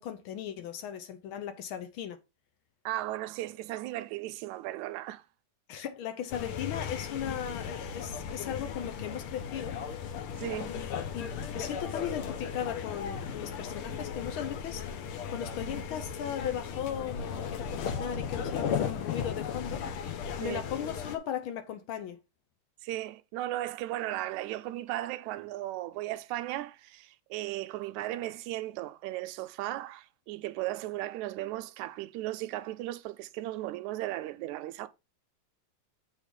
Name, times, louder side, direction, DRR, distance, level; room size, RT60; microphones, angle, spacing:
voice 1, 0.0-2.2 5.7-9.8 10.7-11.3 11.5-19.8 20.4-22.2, left 9 dB, 85° left, 1.1 m, -37 dB
voice 2, 2.9-5.2 10.4-10.7 20.4-20.6 22.8-34.9, right 15 dB, 80° right, 1.9 m, -36 dB
sound 1, 6.3-21.2, left 7 dB, 65° left, 1.4 m, -36 dB
8.2 x 3.8 x 5.3 m
omnidirectional pair, 3.4 m